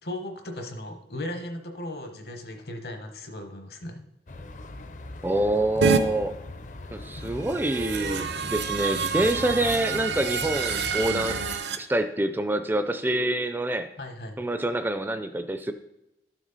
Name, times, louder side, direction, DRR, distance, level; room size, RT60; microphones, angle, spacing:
voice 1, 0.0-4.0 14.0-14.4, left 1 dB, 60° left, 5 dB, 1.1 m, -37 dB
sound 1, 4.3-11.6, left 2 dB, 45° left, 0.6 m, -41 dB
voice 2, 5.2-6.3 6.9-13.9 14.4-15.7, right 1 dB, 10° right, 9 dB, 0.3 m, -26 dB
sound 2, 5.8-6.0 7.4-11.8, right 5 dB, 80° right, 0.7 m, -27 dB
12.5 x 6.1 x 4.0 m, 0.92 s
head